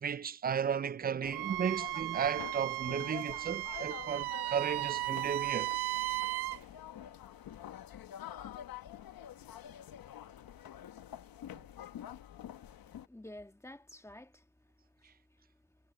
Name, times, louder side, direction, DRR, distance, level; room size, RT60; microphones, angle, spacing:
voice 1, 0.0-5.7, right 7 dB, 25° right, 0.4 m, -34 dB
sound 1, 1.2-13.1, left 10 dB, 65° left, 1.2 m, -48 dB
Wind instrument woodwind instrument, 1.3-6.6, right 18 dB, 80° right, 0.6 m, -36 dB
voice 2, 12.6-14.5 14.9-15.5, left 1 dB, 5° left, 1.6 m, -52 dB
cardioid pair, 90°, 38 cm